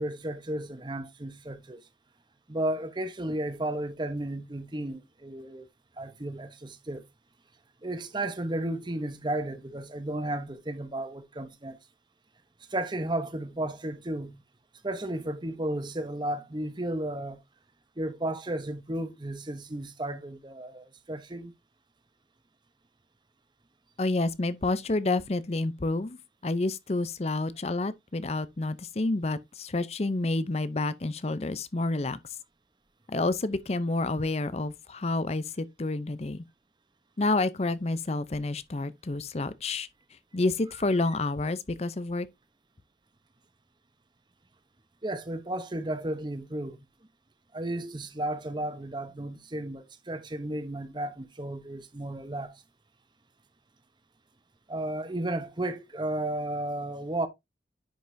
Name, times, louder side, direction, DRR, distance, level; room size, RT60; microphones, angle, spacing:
voice 1, 0.0-1.8 2.5-5.7 6.0-7.0 7.8-11.8 12.7-14.4 14.8-17.4 18.0-21.5 45.0-46.8 47.5-52.6 54.7-57.3, right 1 dB, 25° right, 0.9 m, -33 dB
voice 2, 24.0-32.2 33.1-36.4 37.2-39.9 40.3-42.3, left 2 dB, 35° left, 0.6 m, -29 dB
10.0 x 5.3 x 2.7 m
head